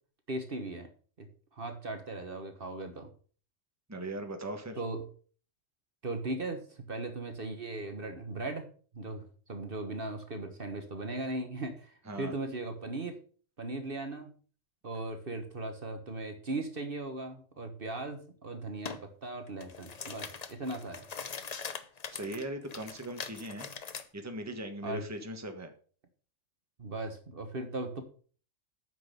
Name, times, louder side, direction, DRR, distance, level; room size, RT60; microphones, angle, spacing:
voice 1, 0.3-0.9 1.2-1.3 1.5-3.1 4.8-5.0 6.0-8.7 8.9-13.2 13.6-14.3 14.8-21.0 24.8-25.0 26.8-28.0, right 2 dB, 45° right, 6 dB, 1.4 m, -38 dB
voice 2, 3.9-4.8 12.0-12.3 22.1-23.7 24.1-25.7, right 1 dB, 15° right, 5 dB, 1.4 m, -39 dB
sound 1, 18.8-19.0 19.5-24.0, left 5 dB, 40° left, 0.8 m, -42 dB
9.2 x 6.2 x 6.7 m, 0.43 s
omnidirectional pair, 1.3 m